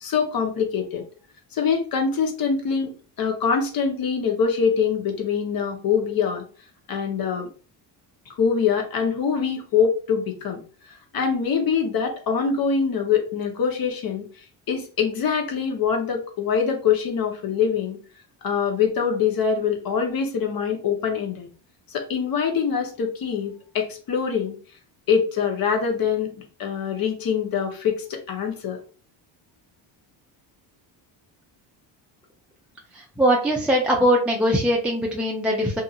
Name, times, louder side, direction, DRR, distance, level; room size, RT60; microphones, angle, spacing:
voice 1, 0.0-1.0 1.5-2.9 3.2-6.4 6.9-7.5 8.4-10.6 10.9-14.2 14.7-18.0 18.4-21.5 21.9-24.5 25.1-26.3 26.6-28.8, left 6 dB, 50° left, 3 dB, 1.0 m, -24 dB
voice 2, 33.2-35.8, equal, 5° right, -2 dB, 0.4 m, -21 dB
2.8 x 2.6 x 2.4 m, 0.38 s
supercardioid pair, 70°, 47 cm